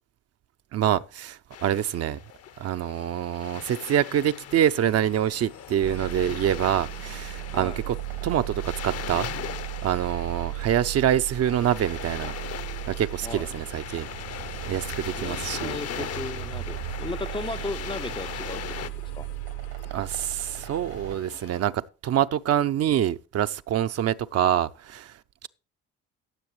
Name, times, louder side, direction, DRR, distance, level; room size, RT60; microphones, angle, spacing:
voice 1, 0.7-2.2 2.6-8.0 8.2-9.3 9.8-12.3 12.9-14.1 14.6-16.1 19.9-25.1, right 10 dB, 50° right, 0.7 m, -26 dB
sound 1, 1.5-18.9, left 10 dB, 45° left, 0.8 m, -39 dB
sound 2, 4.0-21.6, left 9 dB, 85° left, 1.7 m, -49 dB
sound 3, 5.8-21.2, right 15 dB, 70° right, 1.7 m, -36 dB
voice 2, 7.5-7.8 13.2-13.5 15.1-19.3, left 3 dB, 15° left, 0.5 m, -36 dB
17.0 x 7.1 x 3.2 m
supercardioid pair, 70°, 33 cm